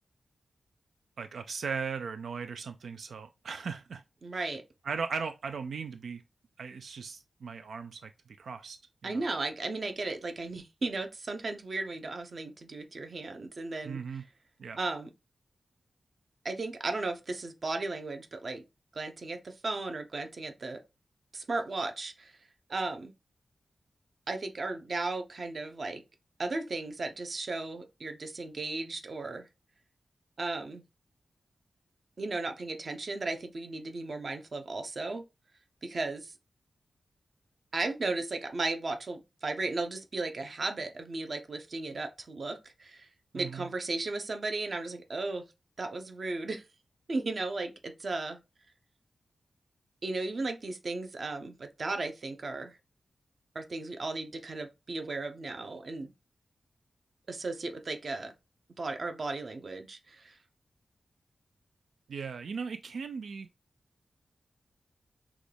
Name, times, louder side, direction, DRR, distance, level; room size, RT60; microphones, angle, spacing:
voice 1, 1.2-4.0 4.3-4.5 4.8-6.2 6.6-8.8 9.0-9.2 13.8-14.2 14.6-14.8 43.3-43.7 62.1-63.5, right 5 dB, 90° right, 0.3 m, -38 dB
voice 2, 4.2-4.6 9.0-14.0 14.8-15.1 16.4-18.6 18.9-20.8 21.3-22.4 22.7-23.1 24.3-26.0 26.4-29.5 30.4-30.8 32.2-35.2 35.8-36.3 37.7-43.1 43.3-45.5 45.8-46.6 47.1-48.4 50.0-52.8 53.5-56.1 57.3-58.3 58.8-60.4, right 3 dB, 45° right, 0.7 m, -35 dB
6.1 x 2.3 x 3.3 m
wide cardioid pair, 160°, 0 cm